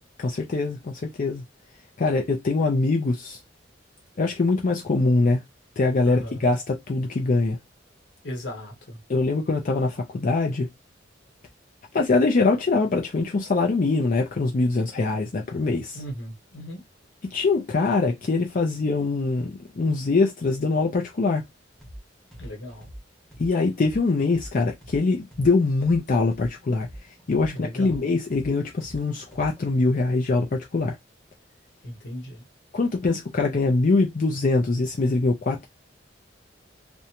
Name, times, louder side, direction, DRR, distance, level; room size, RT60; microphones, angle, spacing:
voice 1, 0.2-1.4 2.0-3.4 4.2-5.4 5.8-7.6 9.1-10.7 11.9-16.0 17.3-21.4 23.4-26.9 27.3-31.0 32.7-35.7, left 3 dB, 50° left, 0.5 m, -23 dB
voice 2, 6.0-6.5 8.2-9.0 15.9-16.8 22.4-22.9 27.4-28.1 31.8-32.4, equal, 70° left, 1.1 m, -37 dB
sound 1, 21.8-22.0 22.3-26.0 26.3-29.7, equal, 5° left, 0.9 m, -43 dB
2.6 x 2.2 x 2.8 m
head